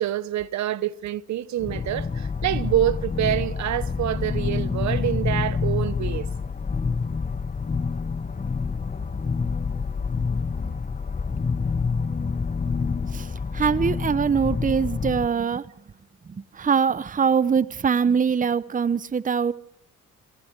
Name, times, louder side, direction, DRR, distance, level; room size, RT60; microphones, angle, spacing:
voice 1, 0.0-6.3, right 12 dB, 65° right, 1.0 m, -26 dB
sound 1, 1.6-15.3, left 5 dB, 25° left, 1.0 m, -27 dB
voice 2, 13.5-15.6 16.5-19.5, right 6 dB, 25° right, 0.8 m, -22 dB
27.0 x 24.5 x 4.7 m
cardioid pair, 90°, 30 cm